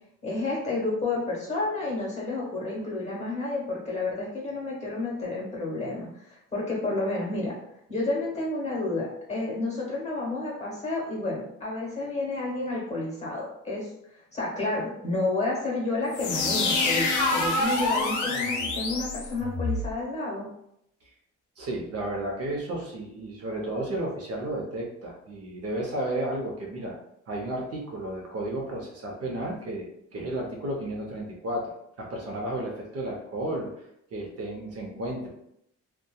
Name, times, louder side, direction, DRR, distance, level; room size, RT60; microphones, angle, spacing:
voice 1, 0.2-7.5 7.9-13.9 14.3-20.5, left 2 dB, 20° left, -4 dB, 1.3 m, -30 dB
sound 1, 16.1-19.9, left 2 dB, 75° left, 0.6 m, -26 dB
voice 2, 21.6-27.0 27.3-31.7 32.0-33.7 34.1-35.3, right 1 dB, 55° right, -1 dB, 0.7 m, -33 dB
2.7 x 2.3 x 2.2 m, 0.77 s
cardioid pair, 90°, 30 cm